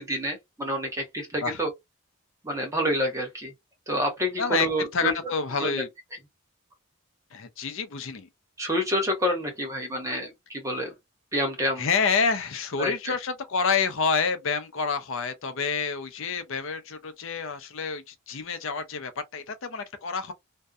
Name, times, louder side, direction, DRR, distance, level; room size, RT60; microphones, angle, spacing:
voice 1, 0.0-1.7 2.4-3.5 3.9-5.1 5.6-5.8 8.6-10.9 11.3-11.9 12.8-13.1, equal, 15° right, 0.8 m, -28 dB
voice 2, 4.9-5.9 7.3-8.3 11.8-20.3, left 5 dB, 60° left, 0.5 m, -28 dB
2.6 x 2.1 x 2.3 m
head